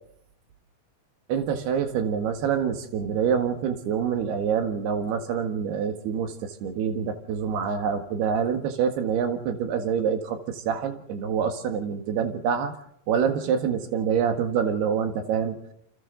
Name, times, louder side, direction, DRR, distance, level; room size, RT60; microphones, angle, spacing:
voice 1, 1.3-12.7 13.1-15.6, right 7 dB, 75° right, 6 dB, 3.7 m, -26 dB
28.5 x 25.5 x 3.9 m, 0.70 s
omnidirectional pair, 4.8 m